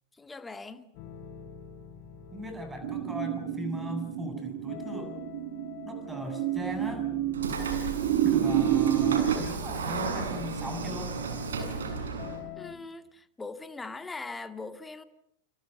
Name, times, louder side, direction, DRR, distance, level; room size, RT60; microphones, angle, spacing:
voice 1, 0.1-0.9 12.6-15.0, left 3 dB, 10° left, 2.1 m, -41 dB
sound 1, 0.9-12.7, left 8 dB, 40° left, 7.9 m, -46 dB
voice 2, 2.3-5.1 5.8-7.1 8.2-11.2, equal, 10° right, 7.4 m, -38 dB
sound 2, 2.8-9.3, right 11 dB, 50° right, 2.5 m, -29 dB
Train / Sliding door, 7.3-12.4, right 4 dB, 65° right, 7.0 m, -34 dB
29.5 x 29.0 x 6.7 m
figure-of-eight pair, 90°, 0 cm